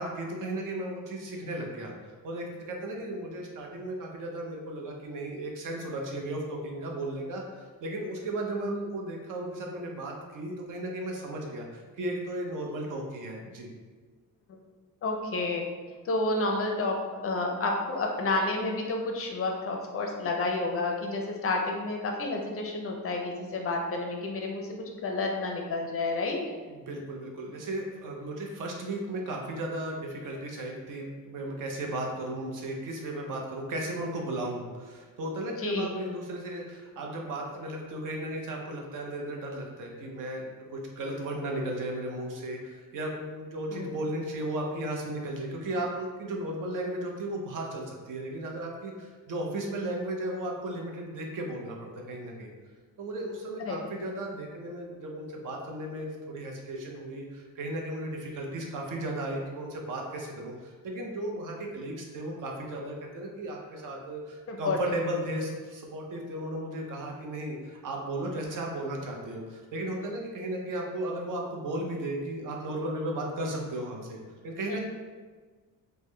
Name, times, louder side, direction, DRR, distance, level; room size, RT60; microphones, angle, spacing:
voice 1, 0.0-1.9 2.2-13.7 26.7-40.4 40.7-52.5 53.0-74.2 74.4-74.8, right 1 dB, 65° right, 0 dB, 0.7 m, -35 dB
voice 2, 15.0-15.7 16.0-16.9 17.2-24.7 25.0-26.4 35.6-35.9 43.7-43.9 53.7-53.8 64.5-64.9 74.7-74.8, left 2 dB, 40° left, 1 dB, 0.4 m, -30 dB
3.5 x 2.1 x 3.2 m, 1.4 s
cardioid pair, 135°, 35 cm